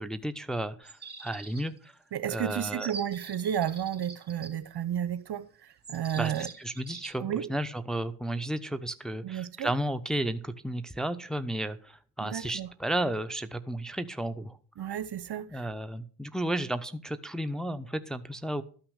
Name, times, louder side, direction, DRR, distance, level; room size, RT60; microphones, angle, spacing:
voice 1, 0.0-1.9 2.3-2.9 6.2-14.6 15.5-18.6, right 1 dB, ahead, 0.8 m, -33 dB
sound 1, 0.8-1.8 2.8-4.5 5.8-7.1, right 4 dB, 20° right, 2.5 m, -44 dB
voice 2, 2.1-6.5 7.2-7.5 9.2-9.7 12.2-12.7 14.8-15.7, right 10 dB, 50° right, 0.9 m, -32 dB
12.5 x 5.9 x 6.4 m
supercardioid pair, 50°, 49 cm